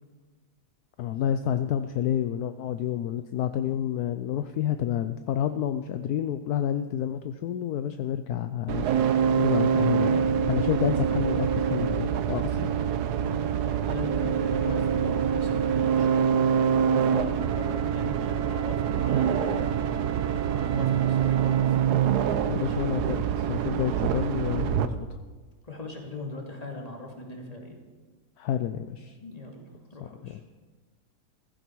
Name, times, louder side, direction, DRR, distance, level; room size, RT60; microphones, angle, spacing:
voice 1, 1.0-8.9 9.4-12.7 22.5-25.2 28.4-29.2 30.0-30.4, left 10 dB, 70° left, 9 dB, 1.1 m, -29 dB
sound 1, 8.7-24.9, right 8 dB, 75° right, 1.3 m, -25 dB
voice 2, 13.6-20.0 20.5-21.8 25.6-27.8 29.2-29.6 29.9-30.4, left 2 dB, 20° left, 0 dB, 2.6 m, -40 dB
Wind instrument woodwind instrument, 17.4-22.0, right 7 dB, 55° right, 0.8 m, -41 dB
15.5 x 15.5 x 4.7 m, 1.4 s
omnidirectional pair, 1.8 m